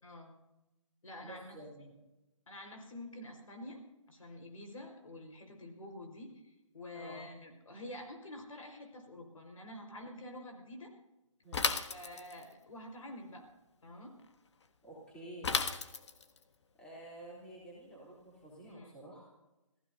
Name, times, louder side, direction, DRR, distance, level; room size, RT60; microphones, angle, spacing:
voice 1, 0.0-0.3 1.0-1.5 2.5-3.8 4.1-10.9 11.9-13.5 13.8-14.1 18.7-18.9, left 1 dB, 80° left, 3 dB, 4.9 m, -48 dB
voice 2, 1.2-1.9 6.9-7.2 11.4-11.7 14.8-15.6 16.8-19.3, right 1 dB, 5° left, -5 dB, 3.4 m, -50 dB
Bicycle / Mechanisms, 11.5-12.5 15.4-16.4, left 5 dB, 55° left, 1.3 m, -33 dB
27.5 x 15.5 x 2.8 m, 0.97 s
hypercardioid pair, 165°, 17 cm